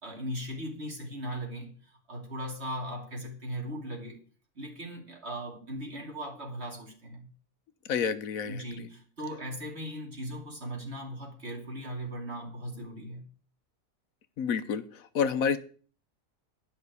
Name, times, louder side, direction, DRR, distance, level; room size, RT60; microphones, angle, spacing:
voice 1, 0.0-4.2 4.5-7.3 8.4-13.2, equal, 50° right, 3.1 m, -38 dB
voice 2, 7.9-8.6 14.4-14.8 15.1-15.6, left 6 dB, 80° left, 1.3 m, -28 dB
11.0 x 5.9 x 8.1 m
omnidirectional pair, 1.4 m